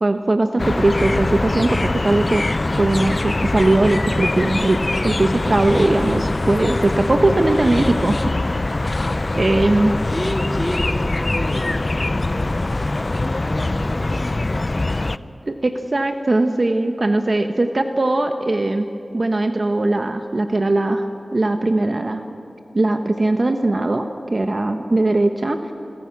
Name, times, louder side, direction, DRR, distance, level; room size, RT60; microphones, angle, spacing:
voice 1, 0.0-2.4 2.8-8.2 8.5-8.6 9.3-10.0 15.5-18.9 19.1-22.3 22.7-25.7, right 2 dB, 50° right, 6 dB, 1.2 m, -19 dB
sound 1, 0.6-15.2, left 2 dB, 40° left, 0.6 m, -23 dB
voice 2, 10.1-15.0, equal, 10° left, 1 dB, 3.5 m, -31 dB
29.0 x 22.5 x 6.1 m, 2.7 s
wide cardioid pair, 60°, 0 cm